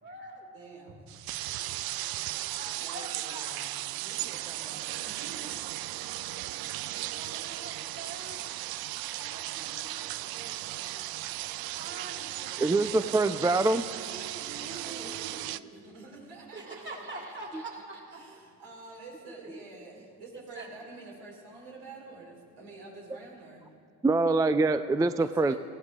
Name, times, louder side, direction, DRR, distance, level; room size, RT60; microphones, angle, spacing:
voice 1, 0.0-0.5 2.5-3.6 7.0-8.4 9.1-11.1 11.7-13.4 14.5-15.9 16.5-18.4 19.4-19.5 20.3-20.8, right 2 dB, 25° right, -1 dB, 3.3 m, -46 dB
voice 2, 0.5-1.0 2.8-5.6 9.5-9.8 11.8-11.9 13.0-13.1 13.9-15.4 15.7-17.3 18.2-23.6 25.2-25.6, right 3 dB, 80° right, -2 dB, 4.3 m, -47 dB
sound 1, 1.1-15.6, right 15 dB, 60° right, 0.5 m, -36 dB
voice 3, 12.6-13.8 15.0-15.1 24.0-25.5, right 3 dB, 10° right, 11 dB, 0.4 m, -24 dB
18.5 x 15.5 x 3.7 m, 2.3 s
supercardioid pair, 80°, 41 cm